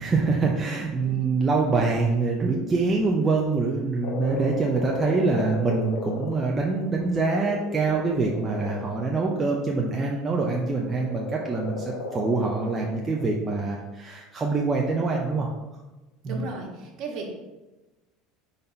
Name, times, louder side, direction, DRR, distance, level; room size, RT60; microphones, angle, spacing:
voice 1, 0.0-15.5 16.2-16.5, right 3 dB, 20° right, -1 dB, 0.6 m, -25 dB
Frog, 4.0-9.9 10.8-13.3, left 3 dB, 80° left, 1.1 m, -36 dB
voice 2, 16.2-17.3, right 3 dB, 45° right, -1 dB, 1.5 m, -35 dB
5.4 x 4.1 x 4.4 m, 1.1 s
supercardioid pair, 140°, 0 cm